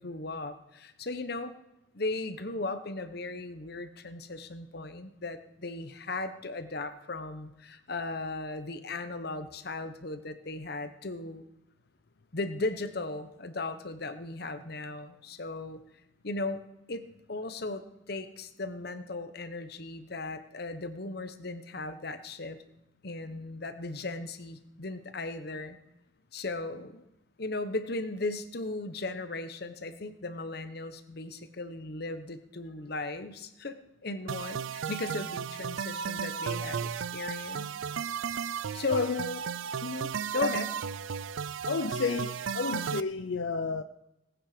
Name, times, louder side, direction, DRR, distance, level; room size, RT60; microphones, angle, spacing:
voice 1, 0.0-1.5 1.9-11.4 12.3-15.8 16.2-16.6 16.9-22.6 23.0-25.8 26.3-27.0 27.4-33.7 34.0-37.7 38.7-39.4 39.8-40.7, left 2 dB, 55° left, 1.0 m, -36 dB
sound 1, 34.3-43.0, right 7 dB, 90° right, 0.4 m, -34 dB
voice 2, 41.6-43.8, left 4 dB, 80° left, 0.5 m, -31 dB
18.5 x 8.9 x 5.0 m
head